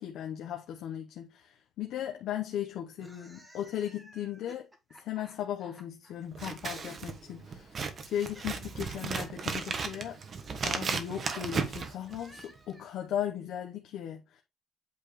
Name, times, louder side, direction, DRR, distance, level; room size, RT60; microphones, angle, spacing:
voice 1, 0.0-4.7 5.0-7.8 8.0-10.2 10.6-14.4, left 10 dB, 80° left, 1.0 m, -37 dB
sound 1, 2.9-6.1 7.2-13.1, right 1 dB, 15° right, 1.8 m, -57 dB
Scissors, 6.3-12.6, right 5 dB, 40° right, 1.2 m, -35 dB
8.5 x 4.7 x 3.2 m
cardioid pair, 140°, 0 cm